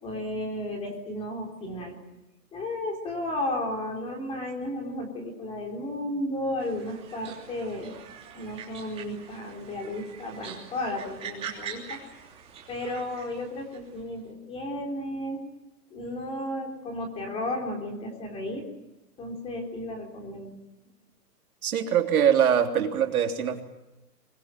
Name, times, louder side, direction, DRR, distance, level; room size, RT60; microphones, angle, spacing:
voice 1, 0.0-2.0 2.5-7.9 8.3-12.0 12.7-15.4 15.9-18.7 19.2-20.5, left 1 dB, 10° left, 2 dB, 3.8 m, -33 dB
sound 1, 6.6-14.1, right 7 dB, 10° right, 3.3 m, -44 dB
voice 2, 21.6-23.6, right 8 dB, 60° right, 4 dB, 3.4 m, -23 dB
24.5 x 21.5 x 9.2 m, 0.96 s
hypercardioid pair, 170°, 49 cm